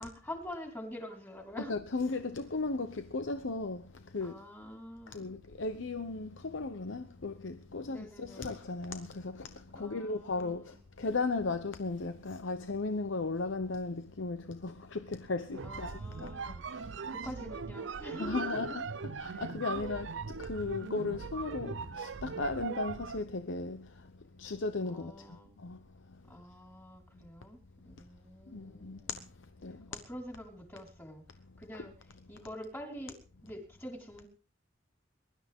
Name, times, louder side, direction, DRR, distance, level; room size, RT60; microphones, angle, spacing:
voice 1, 0.0-1.7 4.2-5.4 7.9-8.5 9.7-10.8 15.6-16.6 17.1-18.6 19.3-19.9 24.8-25.5 26.3-29.1 29.9-31.2 31.6-31.9 32.3-33.1 33.4-34.3, equal, 15° left, 4.8 m, -46 dB
voice 2, 1.6-4.3 5.1-16.9 17.2-17.3 18.2-24.1 24.4-25.1 25.6-25.8 26.1-26.2 28.5-29.2 29.6-30.0 31.7-31.8, left 3 dB, 80° left, 0.9 m, -36 dB
sound 1, 15.5-23.3, right 5 dB, 75° right, 0.6 m, -40 dB
22.0 x 12.5 x 3.7 m
head